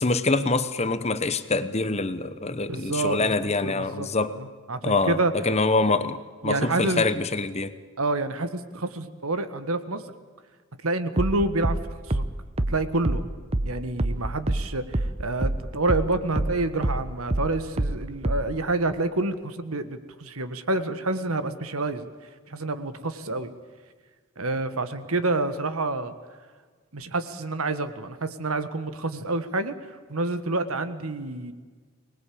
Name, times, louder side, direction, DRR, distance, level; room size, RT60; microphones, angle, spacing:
voice 1, 0.0-4.3 4.8-5.2 5.4-7.7, left 3 dB, 30° left, 1.0 m, -25 dB
voice 2, 2.7-3.2 3.6-4.1 4.4-5.3 6.4-7.0 8.0-10.1 10.8-11.8 12.0-12.2 12.6-13.3 13.6-22.1 22.5-23.5 24.4-26.1 26.9-31.5, right 2 dB, 70° right, 1.6 m, -28 dB
sound 1, 11.2-16.1 16.4-18.6, right 1 dB, 25° right, 1.0 m, -26 dB
24.5 x 20.0 x 8.7 m
head